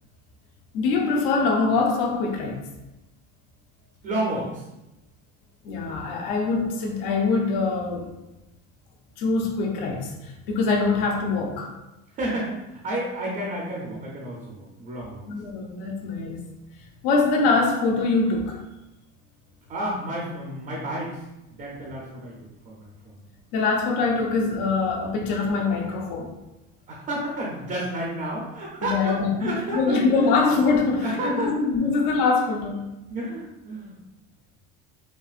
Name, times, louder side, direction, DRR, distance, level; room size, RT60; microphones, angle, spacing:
voice 1, 0.7-2.7 5.6-8.1 9.2-11.7 15.3-16.4 17.0-18.6 23.5-26.3 28.8-32.9, left 4 dB, 65° left, 1 dB, 0.7 m, -23 dB
voice 2, 4.0-4.7 10.8-10.9 12.1-15.3 19.7-21.2 21.5-23.2 26.9-30.4 31.0-31.6 33.1-34.0, right 1 dB, 25° right, -3 dB, 0.5 m, -31 dB
5.6 x 2.4 x 2.4 m, 0.94 s
cardioid pair, 175°, 34 cm